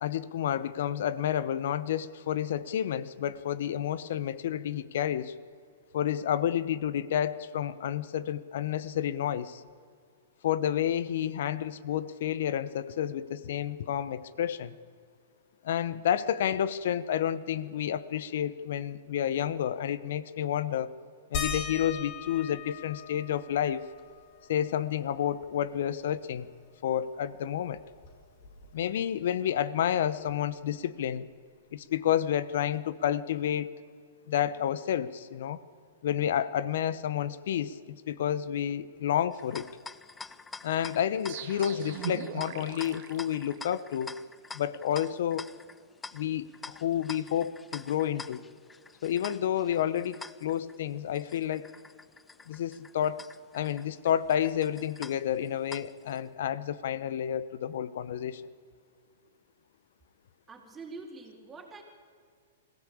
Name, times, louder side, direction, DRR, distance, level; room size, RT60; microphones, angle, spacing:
voice 1, 0.0-5.3 5.9-9.6 10.4-14.8 15.6-20.9 21.3-23.9 24.5-26.5 26.8-27.8 28.7-31.3 31.7-33.7 34.3-35.6 36.0-39.7 40.6-44.1 44.5-45.5 46.1-48.4 49.0-51.7 52.5-53.2 53.5-58.4, left 10 dB, 65° left, 16 dB, 1.0 m, -30 dB
sound 1, 21.3-26.5 26.8-26.9 27.3-29.0 30.3-30.4 31.1-31.2, left 5 dB, 45° left, 4.7 m, -41 dB
sound 2, 39.3-56.2, left 4 dB, 10° left, 0.5 m, -47 dB
sound 3, 41.3-44.1, right 10 dB, 55° right, 1.8 m, -40 dB
voice 2, 60.5-61.8, right 3 dB, 15° right, 0 dB, 4.1 m, -45 dB
21.5 x 16.5 x 8.6 m, 2.1 s
hypercardioid pair, 135°, 0 cm